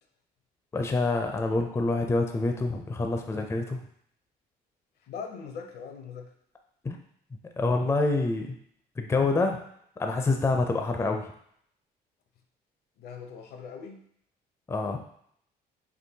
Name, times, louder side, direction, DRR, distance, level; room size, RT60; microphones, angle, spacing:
voice 1, 0.7-3.8 6.8-7.0 7.6-8.5 9.0-9.6 10.0-11.2 14.7-15.0, left 3 dB, 15° left, 4 dB, 0.4 m, -26 dB
voice 2, 5.0-6.3 13.0-14.0, left 6 dB, 70° left, 5 dB, 0.7 m, -41 dB
4.5 x 2.9 x 2.7 m, 0.67 s
cardioid pair, 110°, 17 cm